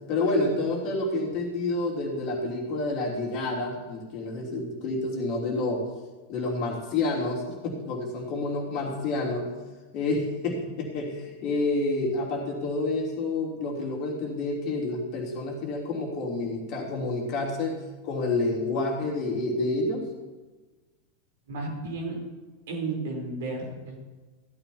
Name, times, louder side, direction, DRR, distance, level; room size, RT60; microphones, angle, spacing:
voice 1, 0.1-5.8 6.3-9.5 9.9-17.7 18.0-20.1, left 2 dB, 40° left, -1 dB, 3.1 m, -29 dB
voice 2, 21.5-22.2 22.7-24.0, right 3 dB, 55° right, -1 dB, 3.7 m, -33 dB
15.5 x 13.5 x 2.9 m, 1.3 s
figure-of-eight pair, 90°, 0 cm